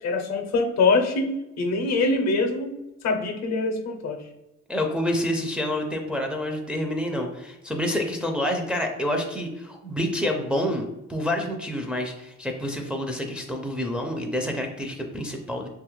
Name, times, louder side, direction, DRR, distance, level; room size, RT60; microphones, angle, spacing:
voice 1, 0.0-2.7 3.0-4.2, left 3 dB, 60° left, 5 dB, 0.6 m, -24 dB
voice 2, 4.7-15.7, left 1 dB, 5° right, 2 dB, 0.4 m, -28 dB
3.0 x 2.4 x 3.0 m, 0.93 s
cardioid pair, 90°, 30 cm